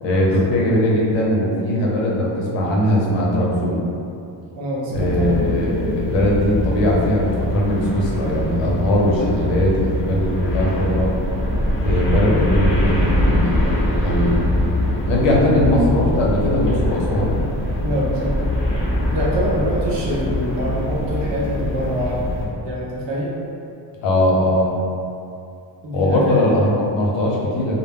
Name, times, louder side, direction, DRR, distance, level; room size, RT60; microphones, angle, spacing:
voice 1, 0.0-3.8 4.9-11.1 11.8-13.7 14.0-14.4 15.0-17.3 24.0-24.8 25.9-27.8, left 1 dB, 75° left, -3 dB, 0.7 m, -19 dB
voice 2, 4.6-5.5 17.8-18.5 19.1-22.2 22.6-23.3 25.8-26.6, equal, 75° right, -6 dB, 0.6 m, -25 dB
sound 1, 4.9-22.4, left 1 dB, 30° left, 0.6 m, -22 dB
2.0 x 2.0 x 3.5 m, 2.6 s
wide cardioid pair, 150°, 44 cm